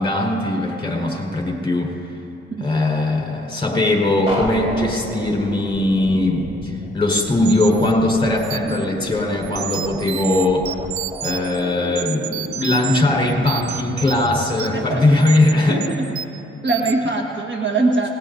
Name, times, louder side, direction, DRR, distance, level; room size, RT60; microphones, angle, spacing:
voice 1, 0.0-1.9 2.6-10.8 11.2-15.8, left 2 dB, 15° left, -1 dB, 4.6 m, -20 dB
sound 1, 4.3-14.5, equal, 20° right, 3.9 m, -32 dB
sound 2, 7.1-8.9 9.4-11.6 12.0-13.0 13.3-14.8 15.2-15.5 15.8-16.4 16.7-16.9, right 12 dB, 70° right, 0.6 m, -31 dB
voice 2, 14.7-15.0 15.7-15.8 16.6-18.1, right 3 dB, 40° right, 1 dB, 1.6 m, -21 dB
27.5 x 19.5 x 2.7 m, 2.7 s
cardioid pair, 90°, 30 cm